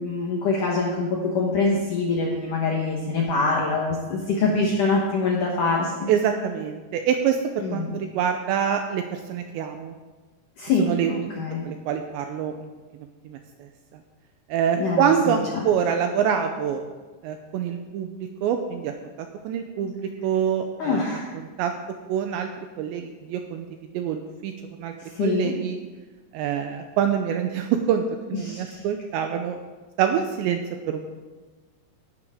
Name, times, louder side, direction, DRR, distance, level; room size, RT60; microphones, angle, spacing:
voice 1, 0.0-6.1 7.6-7.9 10.6-11.7 14.8-15.1 15.5-15.6 20.8-21.3 25.2-25.6 28.4-28.8, left 3 dB, 90° left, -2 dB, 1.8 m, -24 dB
voice 2, 6.1-9.9 10.8-11.2 11.6-12.7 13.3-13.7 14.5-16.9 17.2-18.1 18.4-18.9 19.4-21.0 21.4-21.7 22.1-23.7 23.9-24.5 24.8-24.9 25.2-25.8 26.3-28.0 28.3-29.6 30.0-30.6 30.9-31.1, right 8 dB, 90° right, 5 dB, 2.6 m, -25 dB
17.0 x 11.0 x 3.7 m, 1.3 s
omnidirectional pair, 5.8 m